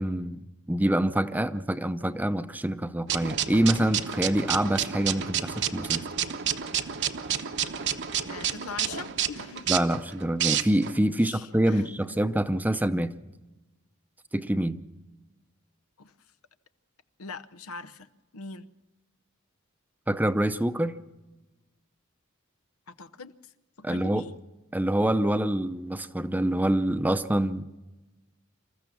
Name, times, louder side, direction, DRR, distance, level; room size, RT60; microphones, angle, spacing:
voice 1, 0.0-6.1 9.7-13.1 14.3-14.8 20.1-21.0 23.8-24.2 24.7-27.6, right 1 dB, 10° right, 11 dB, 0.6 m, -26 dB
sound 1, 3.1-11.0, right 9 dB, 55° right, 1.0 m, -30 dB
voice 2, 8.3-9.7 11.2-12.2 16.0-16.1 17.2-18.7 22.9-23.5 23.8-24.3, left 4 dB, 90° left, 12 dB, 0.9 m, -42 dB
26.5 x 14.5 x 7.1 m, 1.1 s
head